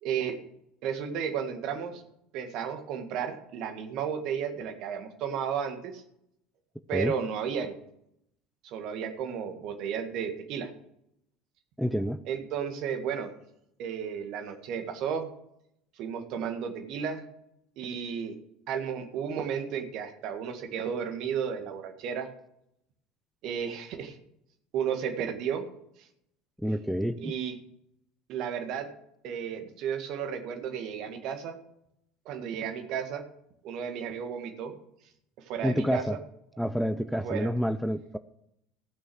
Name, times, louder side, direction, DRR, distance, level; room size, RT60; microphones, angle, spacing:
voice 1, 0.0-0.4 0.8-2.0 2.3-6.0 6.9-7.8 8.6-10.7 12.3-13.3 13.8-15.3 16.0-17.2 17.8-18.4 18.7-22.3 23.4-24.2 24.7-25.7 27.2-27.6 28.3-28.9 29.2-31.6 32.3-33.2 33.6-34.8 35.4-36.2 37.2-37.5, right 7 dB, 55° right, 6 dB, 1.8 m, -33 dB
voice 2, 11.8-12.2 26.6-27.3 35.6-36.2 36.6-38.2, equal, ahead, 11 dB, 0.6 m, -28 dB
15.0 x 6.3 x 6.3 m, 0.77 s
hypercardioid pair, 70°, 0 cm